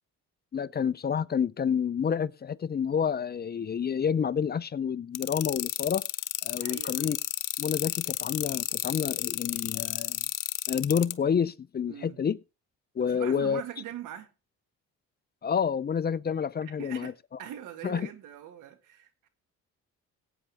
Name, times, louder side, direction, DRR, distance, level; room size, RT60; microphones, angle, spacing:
voice 1, 0.5-6.0 6.4-7.2 7.6-10.2 10.7-12.4 13.0-13.6 15.4-17.1 17.8-18.1, left 7 dB, 35° left, 0.5 m, -29 dB
sound 1, 5.1-11.1, left 16 dB, 85° left, 0.8 m, -31 dB
voice 2, 6.6-7.0 9.8-9.9 11.9-12.2 13.0-14.3 16.8-19.3, right 10 dB, 85° right, 1.9 m, -42 dB
18.5 x 8.9 x 3.5 m
cardioid pair, 90°, 30 cm